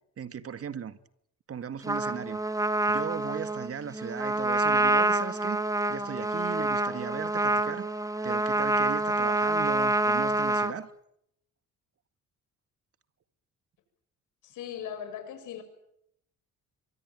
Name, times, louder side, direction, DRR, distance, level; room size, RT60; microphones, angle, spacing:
voice 1, 0.2-1.0 1.5-2.4 2.9-5.6 5.9-7.9 8.2-10.9, right 7 dB, 50° right, 1.9 m, -37 dB
Trumpet, 1.8-10.7, right 2 dB, 10° right, 1.8 m, -27 dB
voice 2, 14.4-15.6, left 9 dB, 85° left, 6.9 m, -38 dB
24.5 x 24.0 x 9.2 m
cardioid pair, 90°, 30 cm